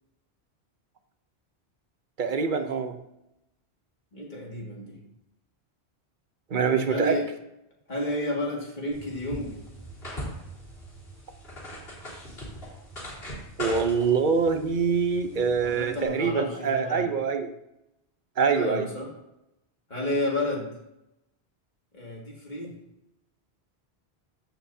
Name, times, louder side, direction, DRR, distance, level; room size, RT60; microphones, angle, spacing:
voice 1, 2.2-3.0 6.5-7.2 13.6-17.5 18.4-18.9, right 5 dB, 50° right, 7 dB, 0.9 m, -25 dB
voice 2, 4.1-5.1 6.8-7.3 7.9-9.5 15.6-17.1 18.5-19.1 19.9-20.7 21.9-22.8, left 1 dB, 45° left, -2 dB, 2.4 m, -31 dB
sound 1, 8.9-16.1, equal, 65° left, 3.3 m, -40 dB
14.5 x 6.0 x 2.8 m, 0.86 s
omnidirectional pair, 1.1 m